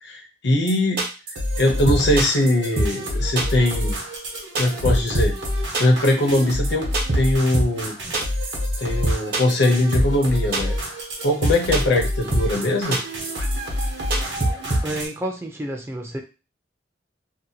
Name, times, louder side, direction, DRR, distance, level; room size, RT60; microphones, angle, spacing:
voice 1, 0.0-1.0 1.6-3.9 4.6-5.3 5.8-7.9 8.8-10.7 11.2-13.0, left 1 dB, 70° left, 2 dB, 0.7 m, -21 dB
sound 1, 0.7-0.8 1.0-1.3 1.6-1.7 1.9-2.5 2.8-3.1 3.4-4.3 4.5-5.5 5.7-6.1 6.3-6.4 6.6-6.7 6.9-7.3 7.5-7.9 8.1-8.8 9.0-9.7 9.9-10.3 10.5-10.9 11.1-11.2 11.4-12.1 12.3-12.6 12.9-13.5 13.8-13.9 14.1-15.0, right 1 dB, 60° right, 0.8 m, -23 dB
sound 2, 1.4-15.1, left 1 dB, 85° right, 0.9 m, -28 dB
voice 2, 14.6-16.2, right 1 dB, 15° right, 2 dB, 0.4 m, -30 dB
2.7 x 2.2 x 2.7 m, 0.31 s
head